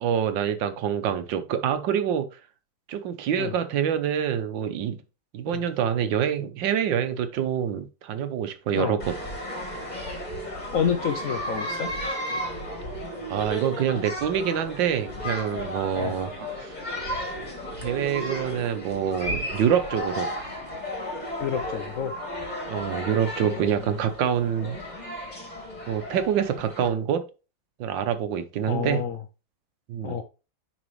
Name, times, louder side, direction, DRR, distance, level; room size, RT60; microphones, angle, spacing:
voice 1, 0.0-2.3 2.9-5.0 5.3-9.1 13.3-16.7 17.8-20.3 22.7-24.8 25.9-27.2 27.8-29.0 29.9-30.2, right 8 dB, 80° right, 10 dB, 1.5 m, -26 dB
sound 1, 9.0-26.9, equal, 25° left, 2.2 m, -34 dB
voice 2, 10.7-11.9 15.9-16.2 21.4-22.2 23.4-23.9 28.6-29.2 30.0-30.2, left 7 dB, 65° left, 7 dB, 0.8 m, -29 dB
10.0 x 4.0 x 3.2 m, 0.31 s
omnidirectional pair, 2.0 m